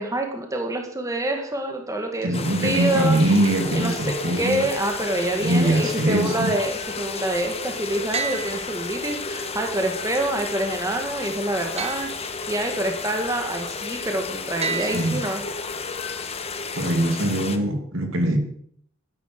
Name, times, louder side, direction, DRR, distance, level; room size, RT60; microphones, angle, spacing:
voice 1, 0.0-3.2 3.7-3.9 4.4-12.1 12.5-15.4, right 1 dB, 15° right, 2.1 m, -26 dB
voice 2, 2.2-4.7 5.4-6.5 14.8-15.2 16.7-18.4, right 1 dB, 70° right, 2.6 m, -22 dB
sound 1, 2.3-17.6, left 4 dB, 30° left, 1.3 m, -32 dB
sound 2, 8.1-9.4 11.8-12.9 14.6-15.8, right 6 dB, 30° right, 0.9 m, -33 dB
13.0 x 10.5 x 6.8 m
head